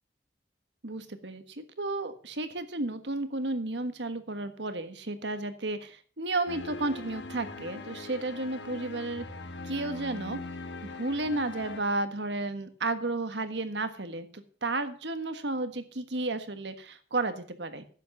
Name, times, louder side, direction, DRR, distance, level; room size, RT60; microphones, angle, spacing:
voice 1, 0.8-9.3 9.6-10.4 10.8-17.8, right 2 dB, 90° right, 10 dB, 1.5 m, -33 dB
sound 1, 6.5-11.8, left 3 dB, 90° left, 1.5 m, -41 dB
11.0 x 8.2 x 6.4 m, 0.43 s
head